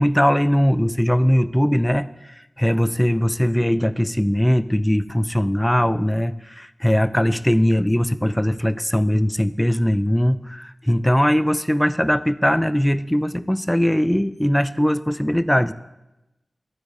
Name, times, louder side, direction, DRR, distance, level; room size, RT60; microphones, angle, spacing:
voice 1, 0.0-15.7, equal, 5° left, 13 dB, 0.3 m, -20 dB
13.0 x 9.4 x 2.6 m, 0.97 s
wide cardioid pair, 60°, 0 cm